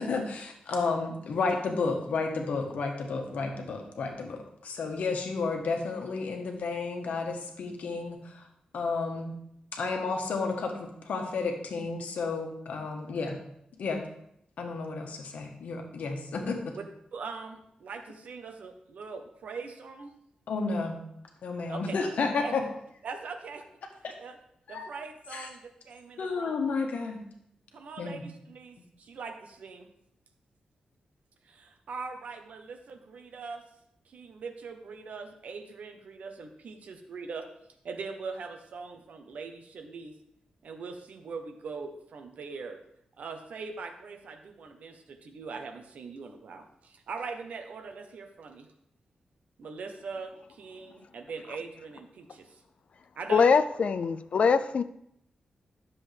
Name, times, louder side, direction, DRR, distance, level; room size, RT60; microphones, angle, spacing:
voice 1, 0.0-8.5 8.7-9.4 9.7-13.4 13.8-14.0 14.6-16.8 20.5-21.0 21.4-22.6 24.0-24.1 24.7-24.9 25.3-25.5 26.2-27.2 28.0-28.2, left 4 dB, 80° left, 3 dB, 1.4 m, -32 dB
voice 2, 17.1-20.1 21.7-22.0 22.4-22.5 23.0-23.6 24.2-24.4 24.7-26.6 27.7-29.9 31.4-33.6 34.0-37.5 37.8-40.2 40.6-42.8 43.2-48.7 49.6-52.6 53.2-53.5, right 4 dB, 70° right, 5 dB, 1.0 m, -41 dB
voice 3, 53.3-54.8, left 5 dB, 55° left, 12 dB, 0.4 m, -23 dB
10.5 x 7.1 x 3.5 m, 0.75 s
wide cardioid pair, 130°, 3 cm